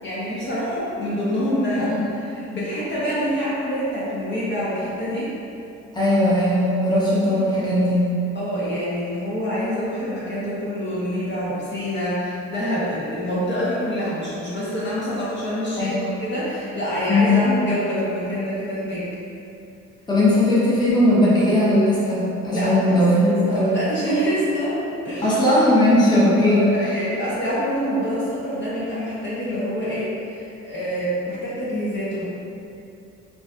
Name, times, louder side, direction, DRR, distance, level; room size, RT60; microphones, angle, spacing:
voice 1, 0.0-5.3 8.3-19.1 22.5-24.8 25.0-25.3 26.4-32.2, equal, 35° left, -9 dB, 0.9 m, -26 dB
voice 2, 5.9-8.1 15.8-16.1 17.1-17.4 20.1-23.7 25.2-27.0, left 1 dB, 15° left, -8 dB, 1.0 m, -18 dB
4.8 x 2.5 x 2.4 m, 2.7 s
cardioid pair, 90°, 30 cm